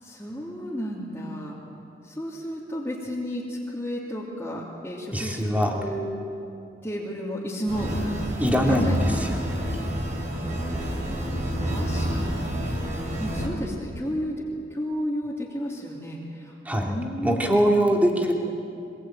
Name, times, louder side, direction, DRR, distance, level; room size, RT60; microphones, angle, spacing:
voice 1, 0.0-1.6 2.0-6.1 6.8-7.9 8.6-8.9 10.3-12.5 13.2-14.3 14.7-17.5, equal, 15° left, -8 dB, 3.1 m, -33 dB
voice 2, 5.1-5.7 8.4-9.4 16.6-16.9 17.2-18.3, equal, 10° right, -1 dB, 2.9 m, -22 dB
sound 1, 7.7-13.5, equal, 40° right, 5.5 m, -29 dB
25.5 x 21.5 x 9.1 m, 2.7 s
head